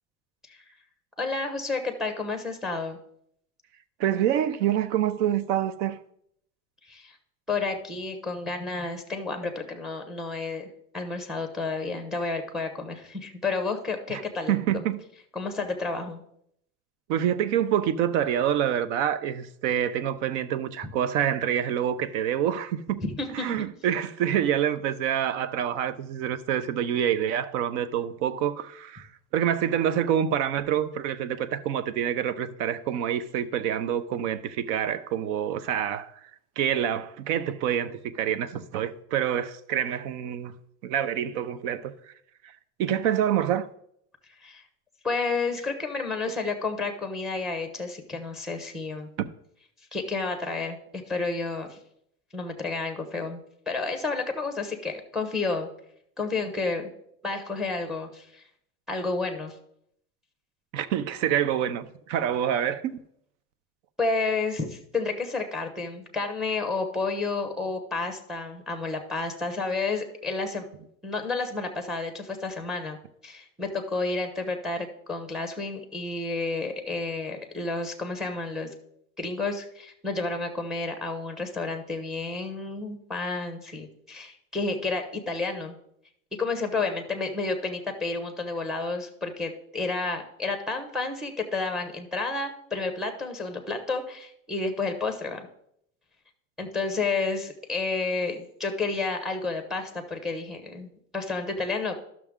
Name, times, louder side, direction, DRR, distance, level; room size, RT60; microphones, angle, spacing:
voice 1, 1.2-3.0 6.9-7.1 7.5-10.7 10.9-14.8 15.3-16.2 23.0-23.6 44.4-44.6 45.0-49.1 49.9-51.8 52.3-53.4 53.7-55.7 56.2-56.9 57.2-58.4 58.9-59.5 64.0-70.7 71.0-73.0 73.2-78.7 79.2-85.8 86.4-95.5 96.6-102.0, left 3 dB, ahead, 0.9 m, -31 dB
voice 2, 4.0-6.0 14.1-14.2 14.5-15.0 17.1-23.0 23.3-29.1 29.3-36.1 36.6-40.5 40.8-41.9 42.8-43.7 46.3-46.4 49.2-49.3 60.7-63.0, right 10 dB, 75° right, 0.7 m, -27 dB
12.5 x 6.1 x 3.6 m
cardioid pair, 155°, 37 cm